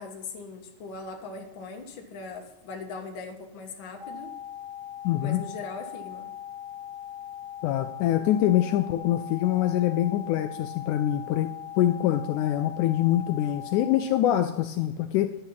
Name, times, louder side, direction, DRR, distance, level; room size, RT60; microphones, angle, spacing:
voice 1, 0.0-4.3 5.2-6.3, left 4 dB, 45° left, 2 dB, 1.8 m, -40 dB
sound 1, 4.0-14.0, left 10 dB, 70° right, 7.0 m, -40 dB
voice 2, 5.0-5.4 7.6-11.5 11.8-15.3, left 12 dB, 80° left, 8 dB, 1.9 m, -24 dB
11.5 x 9.1 x 5.7 m, 0.95 s
omnidirectional pair, 3.7 m